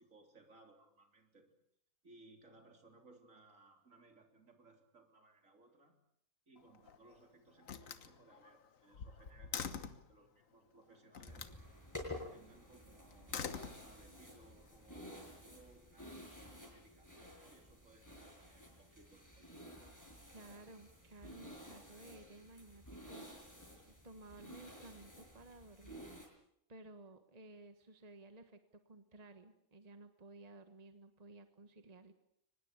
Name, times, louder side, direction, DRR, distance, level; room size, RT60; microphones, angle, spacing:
voice 1, 0.0-1.5 2.0-6.0 6.5-11.5 12.0-19.8, right 2 dB, 65° right, 4 dB, 3.9 m, -64 dB
Slam, 6.6-7.1 7.6-10.1 11.1-11.6 13.1-14.3, left 6 dB, 70° left, 1.6 m, -45 dB
sound 1, 11.3-26.3, left 1 dB, 10° left, 6.1 m, -52 dB
voice 2, 20.3-23.3 23.8-26.1 26.7-28.6 28.8-32.1, right 2 dB, 30° right, 8 dB, 1.5 m, -56 dB
24.0 x 20.0 x 8.4 m, 0.74 s
omnidirectional pair, 1.5 m